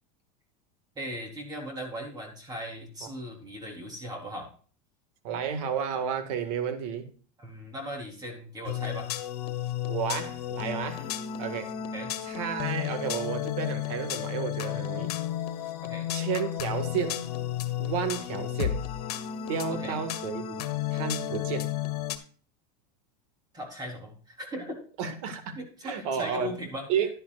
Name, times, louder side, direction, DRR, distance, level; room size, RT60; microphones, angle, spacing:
voice 1, 1.0-4.5 5.3-5.4 7.4-9.1 11.0-11.1 11.9-12.1 15.8-16.1 19.7-20.1 23.5-24.9 25.6-26.9, equal, 20° right, 3.8 m, -38 dB
voice 2, 5.2-7.1 9.9-11.1 11.4-11.7 12.2-15.1 16.1-17.2 17.8-18.8 19.5-20.6 20.9-21.7 25.0-26.5 26.9-27.1, right 7 dB, 65° right, 2.0 m, -32 dB
sound 1, 8.7-22.2, left 11 dB, 85° left, 1.3 m, -33 dB
11.0 x 11.0 x 2.5 m
supercardioid pair, 140°, 19 cm